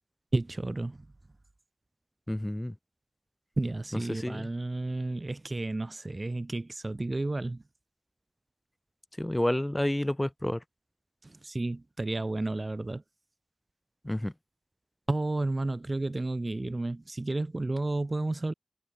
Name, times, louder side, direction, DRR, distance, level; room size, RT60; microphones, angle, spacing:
voice 1, 0.3-1.1 3.6-7.6 11.2-13.0 15.1-18.5, right 2 dB, 55° right, 0.4 m, -32 dB
voice 2, 2.3-2.7 4.1-4.5 9.2-10.6 14.0-14.3, left 1 dB, 20° left, 1.1 m, -29 dB
wide cardioid pair, 45°, 0 cm